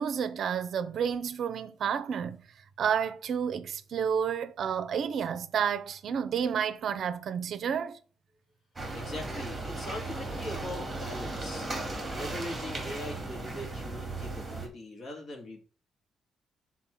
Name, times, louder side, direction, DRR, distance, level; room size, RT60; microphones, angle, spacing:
voice 1, 0.0-2.5 2.8-8.0, right 7 dB, 50° right, 0.6 m, -30 dB
sound 1, 8.8-14.7, right 2 dB, 10° right, 2.2 m, -36 dB
voice 2, 8.9-11.7 12.1-15.6, left 1 dB, 40° left, 2.1 m, -41 dB
5.9 x 4.2 x 5.9 m
cardioid pair, 175°, 0 cm